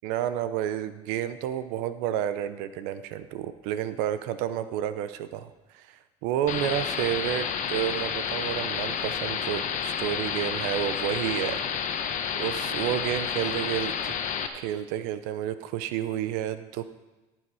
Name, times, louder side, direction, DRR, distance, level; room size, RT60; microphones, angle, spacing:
voice 1, 0.0-5.9 6.2-11.6 12.4-14.1 14.5-16.9, right 11 dB, 80° right, 12 dB, 0.7 m, -30 dB
sound 1, 6.5-14.5, left 7 dB, 55° left, 1.1 m, -30 dB
15.0 x 7.7 x 4.8 m, 1.1 s
supercardioid pair, 85°, 15 cm